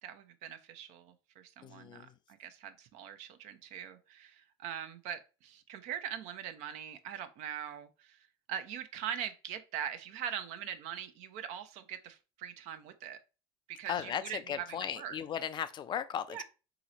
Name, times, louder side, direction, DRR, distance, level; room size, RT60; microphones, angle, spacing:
voice 1, 0.0-8.2 8.5-13.2 13.7-15.1 16.3-16.4, right 9 dB, 60° right, 0.7 m, -42 dB
voice 2, 1.6-2.1 13.9-16.4, left 9 dB, 35° left, 0.4 m, -37 dB
3.9 x 3.0 x 4.0 m
hypercardioid pair, 80°, 14 cm